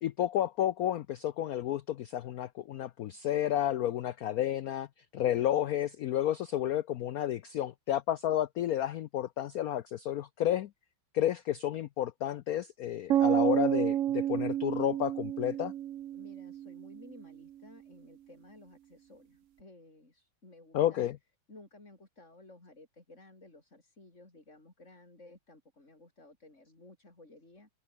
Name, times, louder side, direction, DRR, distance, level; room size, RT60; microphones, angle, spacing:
voice 1, 0.0-4.9 5.1-10.7 11.1-15.7 20.7-21.2, left 11 dB, 90° left, 0.8 m, -31 dB
sound 1, 13.1-17.0, right 11 dB, 80° right, 0.7 m, -30 dB
voice 2, 16.1-21.1 21.5-27.7, left 2 dB, 35° left, 5.5 m, -56 dB
omnidirectional pair, 2.2 m